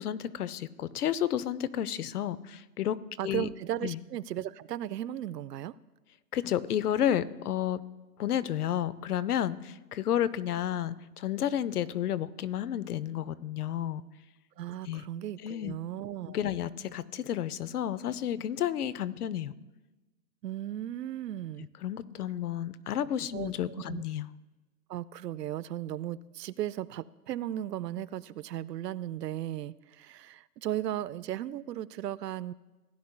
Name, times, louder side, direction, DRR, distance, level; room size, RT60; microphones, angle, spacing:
voice 1, 0.0-3.5 3.8-4.0 6.3-7.8 8.2-14.0 14.8-15.0 15.4-15.8 16.3-19.5 21.8-24.3, left 10 dB, 65° left, 18 dB, 0.6 m, -31 dB
voice 2, 3.2-5.7 14.6-16.5 20.4-21.7 23.3-24.0 24.9-32.5, right 12 dB, 75° right, 18 dB, 0.6 m, -36 dB
17.0 x 9.4 x 2.2 m, 1.1 s
hypercardioid pair, 145°, 49 cm